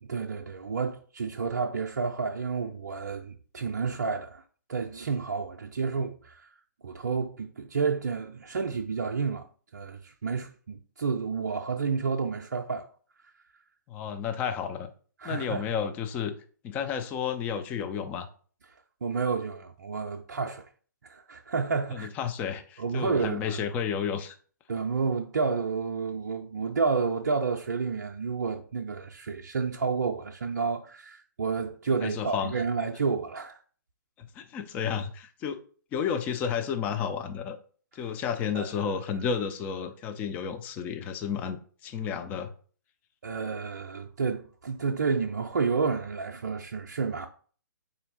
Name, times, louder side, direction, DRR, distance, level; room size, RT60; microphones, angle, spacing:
voice 1, 0.0-4.4 4.7-6.5 6.8-9.5 9.7-12.9 15.2-15.6 19.0-20.6 21.0-22.1 22.8-23.6 24.7-33.6 38.5-38.7 43.2-47.3, right 5 dB, 60° right, 0.4 m, -30 dB
voice 2, 13.9-14.9 15.2-16.3 16.6-18.3 21.9-24.4 32.0-32.6 34.2-35.6 35.9-37.6 37.9-42.5, left 7 dB, 15° left, 0.4 m, -32 dB
3.9 x 2.7 x 4.1 m
figure-of-eight pair, 125°, 10 cm